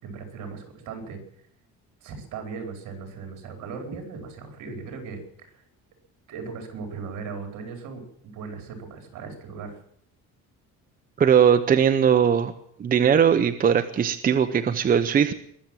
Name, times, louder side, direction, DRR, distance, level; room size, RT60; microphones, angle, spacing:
voice 1, 0.0-1.2 2.0-5.5 6.3-9.8, right 5 dB, 65° right, 4 dB, 4.6 m, -38 dB
voice 2, 11.2-12.5 12.8-15.3, right 8 dB, 25° right, 9 dB, 0.7 m, -19 dB
21.5 x 7.5 x 8.9 m, 0.68 s
cardioid pair, 150°, 32 cm